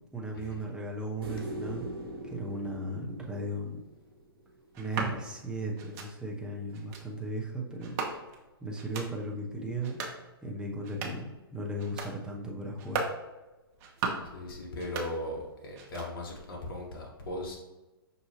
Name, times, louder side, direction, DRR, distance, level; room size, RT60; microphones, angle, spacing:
voice 1, 0.1-1.9 2.2-3.8 4.8-8.0 8.6-10.0 10.4-13.1, right 1 dB, 5° right, -2 dB, 0.7 m, -36 dB
sound 1, 1.2-4.5 7.1-7.2, right 1 dB, 70° right, 1.1 m, -41 dB
sound 2, 4.7-5.1 5.8-6.1 6.7-7.0 7.8-8.4 8.7-9.1 9.7-10.2 10.7-11.3 11.8-12.1 12.7-13.2 13.7-14.3 14.7-15.5 15.7-16.3, right 4 dB, 40° right, 0.8 m, -37 dB
voice 2, 14.2-17.6, left 1 dB, 55° left, -1 dB, 1.0 m, -38 dB
5.9 x 2.7 x 2.8 m, 1.1 s
hypercardioid pair, 125°, 13 cm